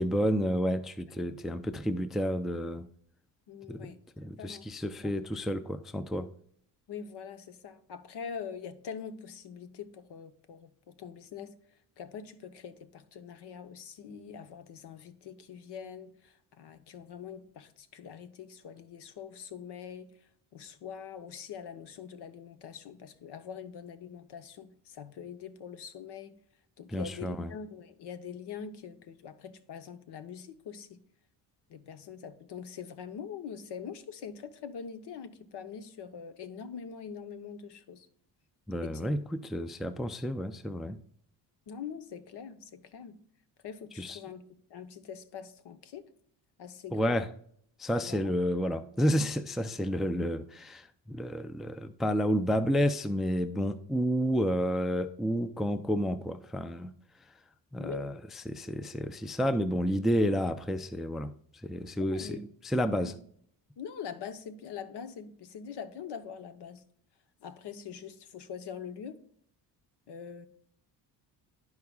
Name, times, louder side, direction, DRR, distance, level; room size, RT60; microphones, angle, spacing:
voice 1, 0.0-2.9 3.7-3.9 4.2-6.3 26.9-27.5 38.7-41.0 44.0-44.2 46.9-47.3 47.8-56.9 57.7-58.1 58.5-61.3 61.6-62.4 62.6-63.2, equal, ahead, 0.4 m, -30 dB
voice 2, 3.5-4.0 4.4-4.7 5.0-5.1 6.9-11.6 12.0-20.1 20.5-26.3 26.8-31.0 31.7-38.1 38.8-39.1 41.7-43.2 43.6-44.4 44.7-46.1 46.6-47.2 48.0-48.3 57.8-58.1 62.1-62.4 62.9-63.1 63.8-66.8 67.4-69.2 70.1-70.5, left 7 dB, 65° left, 1.0 m, -43 dB
12.5 x 4.8 x 2.3 m
supercardioid pair, 75°, 45 cm